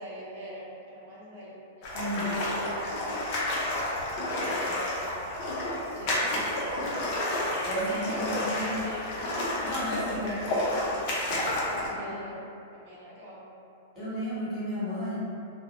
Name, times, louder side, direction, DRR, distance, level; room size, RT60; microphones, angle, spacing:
voice 1, 0.0-1.5 1.8-2.9 4.4-5.1 5.9-6.6 7.9-9.7 10.0-11.0 11.6-12.4 12.7-13.4 14.8-15.0, equal, 65° right, -7 dB, 0.7 m, -42 dB
sound 1, 1.8-11.9, left 1 dB, 45° left, 0.6 m, -30 dB
voice 2, 1.9-2.4 7.6-8.7 9.6-10.4 11.9-12.3 13.9-15.2, equal, 25° left, -11 dB, 1.1 m, -33 dB
2.2 x 2.1 x 2.8 m, 2.7 s
hypercardioid pair, 130°, 0 cm